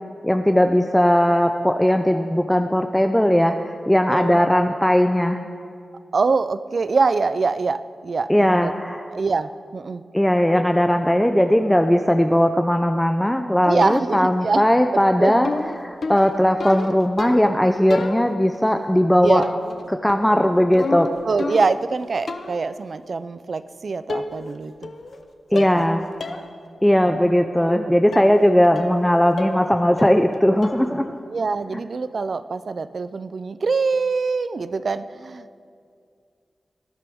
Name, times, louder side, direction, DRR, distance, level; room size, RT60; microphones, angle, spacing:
voice 1, 0.2-5.4 8.3-9.1 10.1-15.5 15.8-19.4 19.9-21.1 25.5-26.1 26.8-31.2, equal, 5° left, 6 dB, 0.4 m, -18 dB
voice 2, 4.1-4.5 6.1-8.7 9.1-10.0 13.6-14.6 15.2-15.4 19.2-19.5 21.3-24.9 25.5-25.8 27.1-27.9 28.4-28.5 31.3-35.6, right 4 dB, 55° right, 13 dB, 0.4 m, -24 dB
sound 1, 13.8-14.4 15.4-17.6 17.9-18.6 19.4-19.8 20.1-21.9 22.3-22.7 23.6-23.7 24.1-24.6 24.8-25.2 25.6-25.9 26.2-26.4 26.8-26.9 28.1-28.4 28.8-29.1 29.4-29.7 30.0-30.4 30.6-31.0, left 3 dB, 60° left, 0.8 m, -31 dB
19.0 x 11.5 x 3.5 m, 2.3 s
wide cardioid pair, 130°, 0 cm